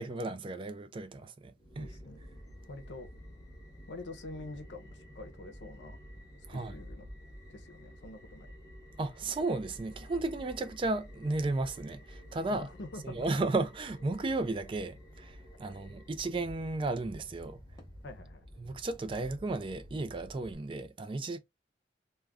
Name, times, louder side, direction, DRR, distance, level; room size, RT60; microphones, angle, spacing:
voice 1, 0.0-1.9 6.5-6.8 9.0-12.7 13.0-17.6 18.6-21.4, right 2 dB, 30° right, 0.3 m, -34 dB
sound 1, 1.6-20.5, equal, 20° left, 0.7 m, -51 dB
voice 2, 1.8-2.2 2.7-3.1 3.9-6.0 6.5-7.0 7.5-8.5 12.4-13.5 15.7-15.8 18.0-18.4, left 2 dB, 85° left, 0.6 m, -46 dB
2.4 x 2.2 x 3.4 m
head